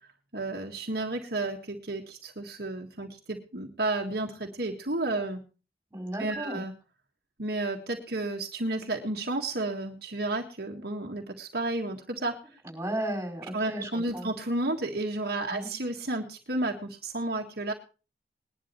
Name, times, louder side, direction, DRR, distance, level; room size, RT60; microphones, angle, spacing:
voice 1, 0.3-5.4 6.2-6.7 7.4-12.4 13.5-17.7, right 2 dB, 60° right, 2 dB, 1.8 m, -32 dB
voice 2, 5.9-6.6 12.6-14.3 15.5-15.7, right 1 dB, 15° right, 2 dB, 5.3 m, -34 dB
20.5 x 11.0 x 3.2 m, 0.34 s
head